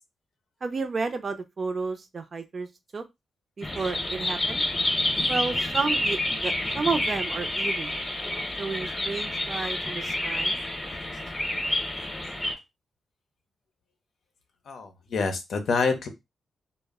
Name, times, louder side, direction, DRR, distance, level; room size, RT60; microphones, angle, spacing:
voice 1, 0.6-2.7 2.9-3.0 3.6-4.6 5.3-7.9 8.6-10.6, right 4 dB, 45° right, 0.5 m, -31 dB
sound 1, 3.6-12.5, left 1 dB, 25° left, 0.7 m, -29 dB
voice 2, 14.7-16.1, left 4 dB, 75° left, 0.6 m, -27 dB
2.0 x 2.0 x 3.4 m
cardioid pair, 85°, 0 cm